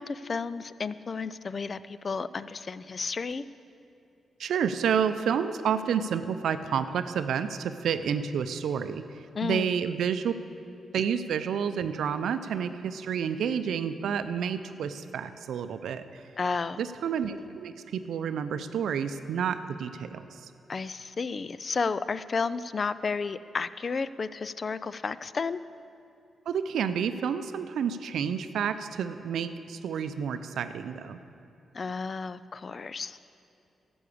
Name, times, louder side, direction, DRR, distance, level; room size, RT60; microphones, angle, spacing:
voice 1, 0.0-3.4 9.3-9.7 16.4-16.8 20.7-25.6 31.7-33.2, left 4 dB, 50° left, 15 dB, 0.4 m, -32 dB
voice 2, 4.4-9.0 9.4-10.3 10.9-16.2 16.8-20.2 26.5-31.2, right 7 dB, 80° right, 10 dB, 0.5 m, -29 dB
12.0 x 7.1 x 8.5 m, 2.6 s
cardioid pair, 60°, 0 cm